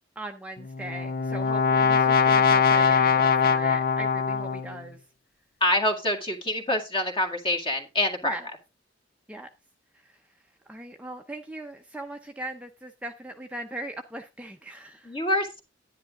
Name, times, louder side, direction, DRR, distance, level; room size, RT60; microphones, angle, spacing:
voice 1, 0.2-5.0 8.2-8.5 9.3-9.5 9.9-10.2 10.7-15.2, right 1 dB, 5° right, 4 dB, 0.7 m, -39 dB
Brass instrument, 0.6-4.8, left 6 dB, 50° left, 0.6 m, -22 dB
voice 2, 5.6-8.4 15.0-15.6, left 1 dB, 30° left, 4 dB, 2.0 m, -26 dB
10.5 x 10.5 x 3.6 m, 0.27 s
head